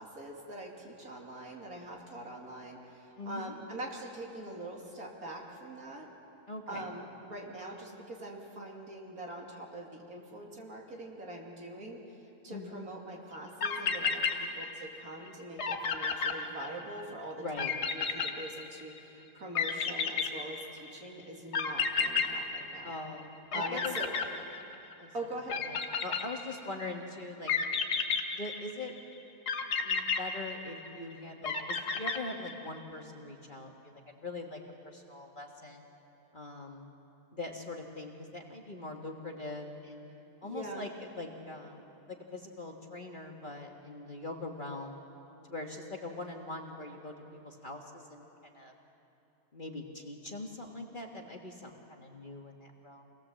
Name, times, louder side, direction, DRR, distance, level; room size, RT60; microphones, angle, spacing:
voice 1, 0.0-6.1 6.7-12.2 12.4-22.9 23.5-24.1 25.1-25.6 40.4-40.9, right 1 dB, 65° right, -1 dB, 3.3 m, -43 dB
voice 2, 3.2-3.5 6.5-6.9 12.5-12.8 17.4-17.7 22.8-24.0 25.0-25.1 25.5-27.5 28.3-28.9 29.8-33.9 34.2-35.9 36.3-36.9 37.3-40.1 40.4-45.0 45.5-48.7 49.5-53.1, left 2 dB, 30° left, 2 dB, 1.6 m, -42 dB
sound 1, 13.3-13.4 13.6-15.0 15.3-15.4 15.6-17.0 17.6-19.0 19.5-20.9 21.5-23.2 23.5-24.9 25.5-26.7 27.5-28.9 29.5-31.0 31.4-32.7, left 6 dB, 80° left, 1.9 m, -32 dB
26.5 x 18.5 x 7.5 m, 3.0 s
omnidirectional pair, 1.7 m